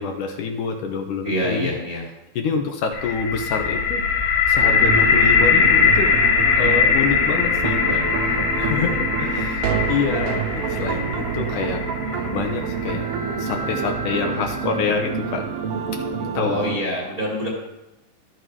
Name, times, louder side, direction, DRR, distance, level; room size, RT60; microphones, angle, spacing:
voice 1, 0.0-1.7 2.4-4.0 4.5-6.2 6.6-7.8 8.2-11.8 12.1-13.1 13.4-15.5 15.9-16.0 16.3-16.6, left 5 dB, 75° left, 3 dB, 2.4 m, -26 dB
voice 2, 1.2-2.0 7.8-8.0 16.4-17.5, equal, 20° right, -3 dB, 2.1 m, -26 dB
sound 1, 2.9-14.8, left 6 dB, 90° left, 3.4 m, -21 dB
sound 2, 4.6-16.8, right 5 dB, 70° right, 1.5 m, -27 dB
13.0 x 7.9 x 4.8 m, 0.95 s
omnidirectional pair, 3.9 m